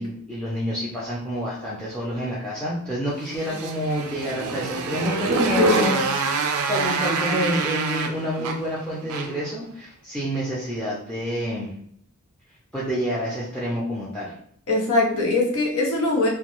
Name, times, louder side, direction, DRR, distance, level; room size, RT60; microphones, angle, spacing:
voice 1, 0.0-6.0 6.6-11.7 12.7-14.3, equal, 5° left, -7 dB, 0.5 m, -28 dB
Motorcycle, 3.2-9.5, right 4 dB, 85° right, 0.4 m, -26 dB
voice 2, 5.6-5.9 14.7-16.3, left 2 dB, 70° left, -1 dB, 0.8 m, -21 dB
2.3 x 2.2 x 2.9 m, 0.65 s
head